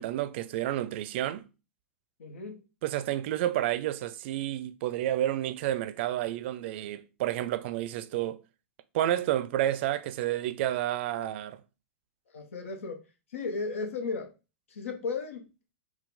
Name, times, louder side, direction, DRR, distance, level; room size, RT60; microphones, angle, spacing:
voice 1, 0.0-1.5 2.8-8.4 8.9-11.6, right 13 dB, 55° right, 0.4 m, -30 dB
voice 2, 2.2-2.6 12.3-13.0 13.3-14.3 14.7-15.5, left 4 dB, 80° left, 1.0 m, -35 dB
4.4 x 2.3 x 3.8 m
hypercardioid pair, 110°, 7 cm